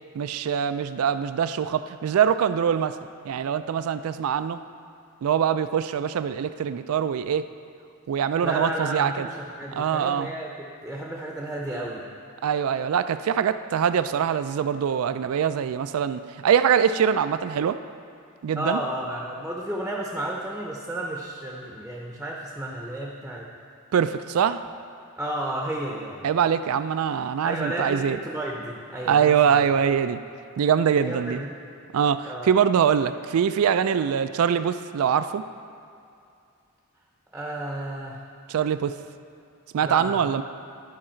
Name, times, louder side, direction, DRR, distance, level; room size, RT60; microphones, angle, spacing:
voice 1, 0.2-3.0 3.2-4.6 5.2-7.5 8.1-9.3 9.8-10.3 12.4-17.8 18.4-18.8 23.9-24.6 26.2-28.2 29.1-30.2 30.6-31.4 31.9-35.4 38.5-39.0 39.7-40.4, right 8 dB, 70° right, 11 dB, 0.3 m, -23 dB
voice 2, 8.4-10.5 10.8-12.1 18.6-23.5 25.2-26.2 27.4-29.6 30.9-31.5 32.3-32.5 37.3-38.2 39.8-40.4, right 1 dB, 5° right, -2 dB, 0.7 m, -32 dB
13.0 x 4.8 x 4.4 m, 2.4 s
head